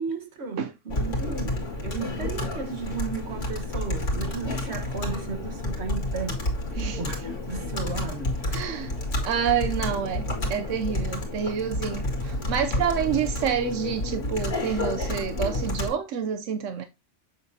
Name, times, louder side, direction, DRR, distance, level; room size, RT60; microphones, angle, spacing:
voice 1, 0.0-6.4 7.0-8.6, right 5 dB, 60° right, 1.6 m, -34 dB
Computer keyboard, 0.9-15.9, left 1 dB, 80° left, 2.3 m, -30 dB
voice 2, 8.5-9.0 9.2-10.2 10.5-16.8, right 8 dB, 85° right, 1.0 m, -28 dB
7.4 x 6.4 x 2.7 m
omnidirectional pair, 1.2 m